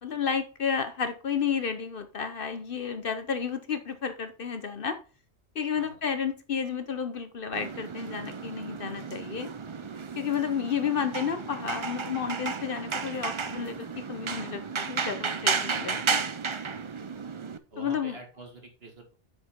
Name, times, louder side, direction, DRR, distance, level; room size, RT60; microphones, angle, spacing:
voice 1, 0.0-5.0 5.5-9.5 10.2-16.2 17.8-18.2, left 7 dB, 55° left, 9 dB, 0.9 m, -31 dB
sound 1, 7.5-17.6, right 5 dB, 35° right, 0.5 m, -33 dB
voice 2, 15.6-16.1 16.9-17.0 17.7-19.1, right 2 dB, 55° right, 3 dB, 2.2 m, -46 dB
8.0 x 6.3 x 3.6 m, 0.35 s
omnidirectional pair, 1.2 m